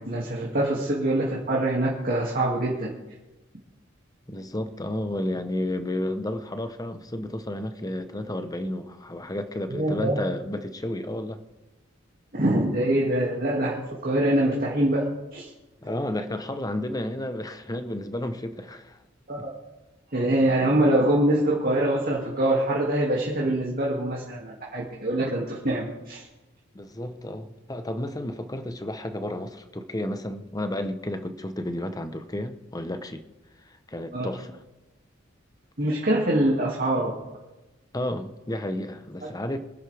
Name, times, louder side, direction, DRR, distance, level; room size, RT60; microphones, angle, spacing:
voice 1, 0.0-2.9 9.7-10.2 12.3-15.5 19.3-19.5 20.1-26.2 34.1-34.3 35.8-37.1, right 1 dB, 45° right, -3 dB, 2.4 m, -24 dB
voice 2, 4.3-11.4 15.8-19.0 26.7-33.2 33.7-34.6 37.9-39.6, left 1 dB, 20° left, 9 dB, 0.9 m, -32 dB
24.5 x 11.0 x 3.5 m, 1.1 s
head